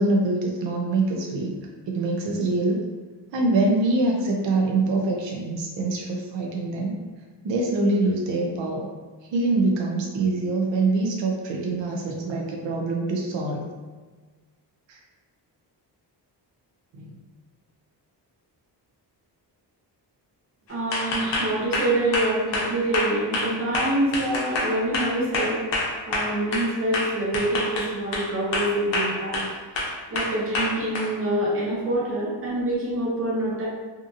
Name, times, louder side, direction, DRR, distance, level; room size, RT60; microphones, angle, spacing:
voice 1, 0.0-1.6 1.9-2.8 3.3-7.0 7.4-8.9 9.3-13.7 14.9-15.0 16.9-17.1, right 2 dB, 90° right, 0 dB, 0.5 m, -24 dB
voice 2, 20.7-25.6 26.1-29.4 30.1-33.7, right 1 dB, 30° right, -6 dB, 0.8 m, -26 dB
sound 1, 20.9-26.7 26.9-28.3 28.5-29.5 29.8-31.1, left 2 dB, 80° left, 0.7 m, -26 dB
2.7 x 2.5 x 2.4 m, 1.4 s
wide cardioid pair, 140°, 43 cm